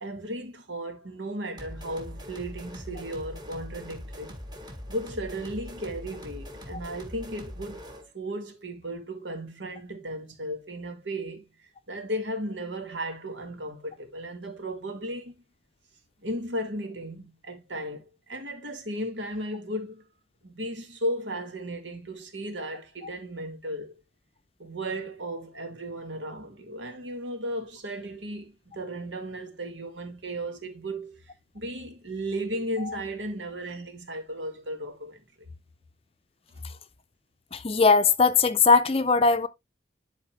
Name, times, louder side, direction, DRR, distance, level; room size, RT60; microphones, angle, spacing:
voice 1, 0.0-4.4 4.9-7.9 8.1-11.4 11.9-15.3 16.2-20.0 20.4-23.9 24.6-31.2 31.5-35.5, right 1 dB, 80° right, 2.0 m, -35 dB
sound 1, 1.6-8.1, equal, 20° right, 1.5 m, -42 dB
voice 2, 37.5-39.5, left 4 dB, 30° left, 0.5 m, -20 dB
11.0 x 4.2 x 3.2 m
head